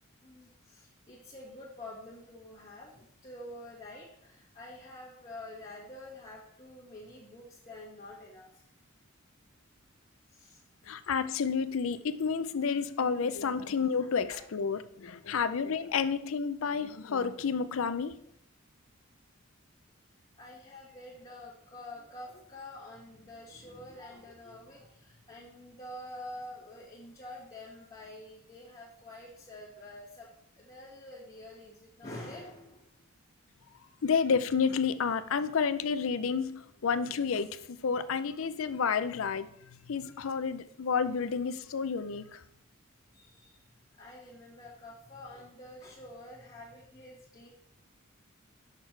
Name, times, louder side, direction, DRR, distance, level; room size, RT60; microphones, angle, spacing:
voice 1, 0.2-8.5 10.3-10.6 14.3-14.4 20.3-30.3 30.6-32.9 43.1-43.6 44.0-47.5, left 1 dB, 30° left, 1.5 m, -47 dB
voice 2, 10.8-18.2 34.0-42.4, left 6 dB, 70° left, 0.5 m, -30 dB
6.6 x 6.1 x 4.6 m
head